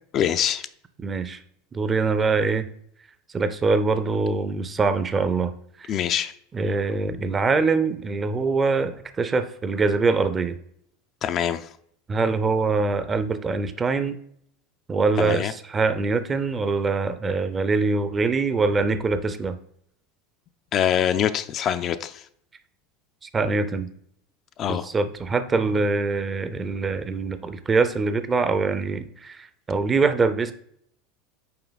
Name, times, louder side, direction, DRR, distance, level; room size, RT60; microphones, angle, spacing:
voice 1, 0.1-0.7 5.9-6.3 11.2-11.7 15.2-15.5 20.7-22.2 24.6-24.9, left 9 dB, 40° left, 11 dB, 0.3 m, -24 dB
voice 2, 1.0-1.4 1.7-2.7 3.3-5.5 5.8-5.9 6.5-10.6 12.1-14.2 14.9-19.6 23.3-23.9 24.7-30.5, right 4 dB, 25° right, 12 dB, 0.5 m, -23 dB
5.7 x 4.2 x 3.9 m, 0.68 s
supercardioid pair, 115°, 0 cm